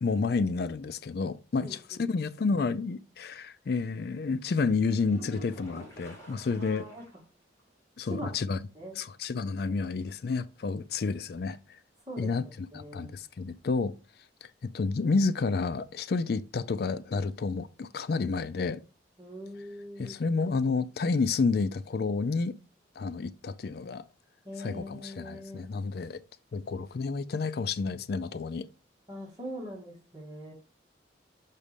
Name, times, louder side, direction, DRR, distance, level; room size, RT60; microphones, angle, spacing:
voice 1, 0.0-6.9 8.0-8.6 8.9-11.6 12.2-13.9 14.4-18.8 20.0-22.6 23.0-24.0 24.6-26.2 26.5-28.7, left 4 dB, 60° left, 0.4 m, -30 dB
voice 2, 1.6-2.0 6.6-7.0 8.0-8.3 8.8-9.0 12.1-12.3 12.7-13.2 19.2-20.2 24.4-25.7 29.1-30.5, equal, 25° right, 2.0 m, -42 dB
sound 1, 5.0-7.3 7.6-7.7 8.1-8.2 12.0-12.1, right 2 dB, 15° left, 2.4 m, -48 dB
6.1 x 4.2 x 5.1 m
head